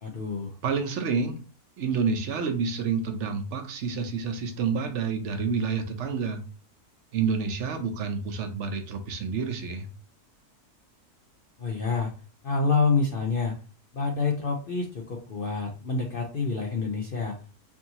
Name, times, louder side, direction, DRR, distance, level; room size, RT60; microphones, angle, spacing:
voice 1, 0.0-0.5 11.6-12.1 12.4-13.5 13.9-17.4, left 4 dB, 60° left, -1 dB, 0.5 m, -27 dB
voice 2, 0.6-1.4 1.8-6.4 7.1-9.9, right 5 dB, 60° right, 5 dB, 0.9 m, -28 dB
4.6 x 2.7 x 2.8 m, 0.37 s
omnidirectional pair, 1.7 m